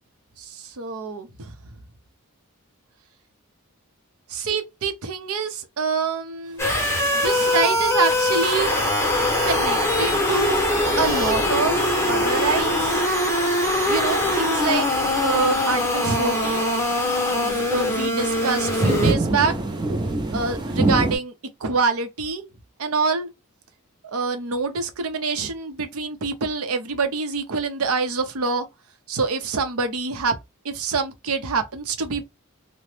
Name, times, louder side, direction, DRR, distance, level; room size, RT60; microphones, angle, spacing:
voice 1, 0.4-1.5 4.3-8.7 9.4-13.0 13.9-14.9 15.2-16.7 17.4-19.5 20.3-21.3 21.6-22.5 22.8-23.3 24.0-28.7 29.1-30.4 30.6-32.2, right 4 dB, 80° right, 0.6 m, -26 dB
sound 1, 6.6-19.1, left 1 dB, 10° left, 0.7 m, -22 dB
sound 2, 6.8-21.2, right 2 dB, 20° right, 0.4 m, -30 dB
2.9 x 2.0 x 3.1 m
head